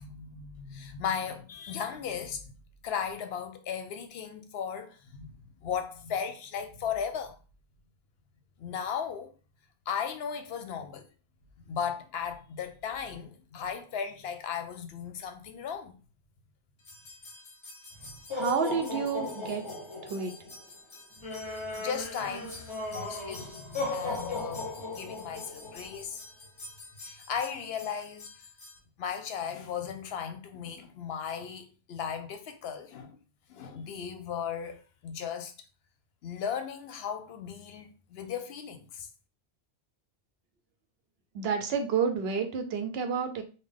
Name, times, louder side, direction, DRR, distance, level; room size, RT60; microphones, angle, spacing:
voice 1, 0.0-2.5 2.8-5.3 5.6-7.4 8.6-9.3 9.9-11.1 11.7-15.9 21.3-26.2 27.0-28.3 29.0-33.2 33.5-35.5 36.2-39.1, left 7 dB, 65° left, 0.7 m, -36 dB
sound 1, 16.8-28.8, left 3 dB, 30° left, 0.6 m, -38 dB
voice 2, 18.3-19.6 20.0-20.3 41.3-43.4, right 6 dB, 65° right, 0.8 m, -30 dB
3.7 x 2.1 x 3.4 m
omnidirectional pair, 1.2 m